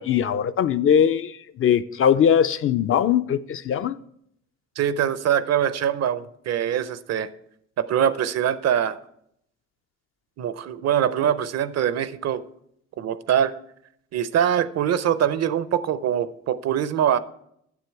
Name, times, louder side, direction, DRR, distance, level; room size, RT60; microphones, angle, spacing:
voice 1, 0.0-4.0, left 8 dB, 45° left, 0.4 m, -21 dB
voice 2, 4.8-7.3 7.8-9.0 10.4-12.4 13.0-13.5 14.1-17.2, right 9 dB, 60° right, 0.6 m, -23 dB
9.5 x 6.9 x 4.6 m
cardioid pair, 90°, 30 cm